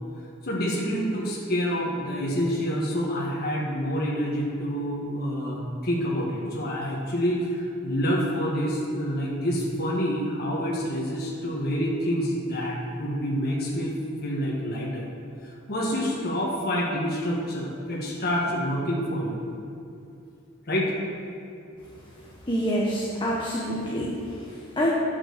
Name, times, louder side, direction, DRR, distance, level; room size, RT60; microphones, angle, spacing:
voice 1, 0.4-13.9 14.2-15.0 15.7-19.4 20.7-20.9, equal, 50° left, -4 dB, 1.7 m, -27 dB
voice 2, 22.5-24.9, equal, 25° left, -4 dB, 1.1 m, -27 dB
9.4 x 6.1 x 6.7 m, 2.6 s
head